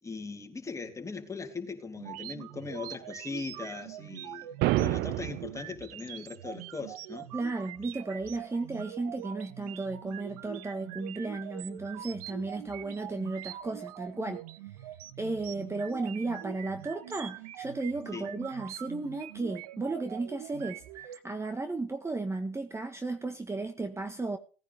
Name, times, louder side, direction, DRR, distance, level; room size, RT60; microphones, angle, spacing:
voice 1, 0.0-4.5 4.8-7.3 15.4-15.7 18.1-18.3, left 4 dB, 15° left, 3.7 m, -39 dB
sound 1, 2.0-21.2, right 13 dB, 90° right, 1.3 m, -44 dB
sound 2, 4.6-5.6, right 18 dB, 60° right, 0.6 m, -28 dB
voice 2, 7.3-14.4 15.2-24.4, right 3 dB, 15° right, 1.6 m, -34 dB
19.0 x 9.9 x 3.7 m
supercardioid pair, 95°, 19 cm